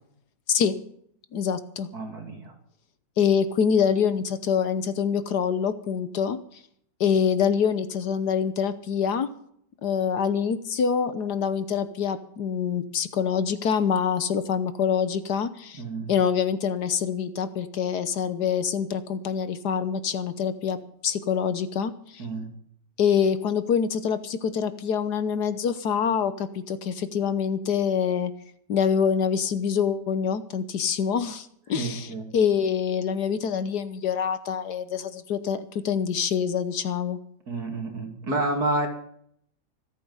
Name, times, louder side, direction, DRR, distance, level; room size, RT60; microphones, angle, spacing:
voice 1, 0.5-0.8 1.3-1.9 3.2-6.6 7.0-9.3 9.8-15.8 16.1-22.3 23.0-28.3 28.7-37.2, left 7 dB, 65° left, 12 dB, 1.4 m, -25 dB
voice 2, 1.9-2.5 15.8-16.1 22.2-22.5 31.7-32.3 37.5-38.9, right 2 dB, 55° right, 3 dB, 3.2 m, -29 dB
25.0 x 8.5 x 5.5 m, 0.67 s
omnidirectional pair, 2.0 m